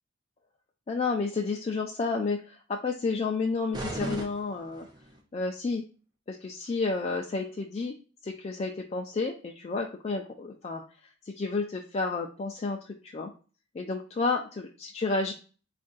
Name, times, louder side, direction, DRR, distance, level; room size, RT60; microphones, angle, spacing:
voice 1, 0.9-4.9 5.3-5.8 6.3-7.9 8.2-10.8 11.2-13.3 13.7-15.3, left 3 dB, 30° left, 1 dB, 0.3 m, -31 dB
sound 1, 3.7-5.2, right 1 dB, 20° right, 0.6 m, -37 dB
4.4 x 2.5 x 3.8 m, 0.38 s
head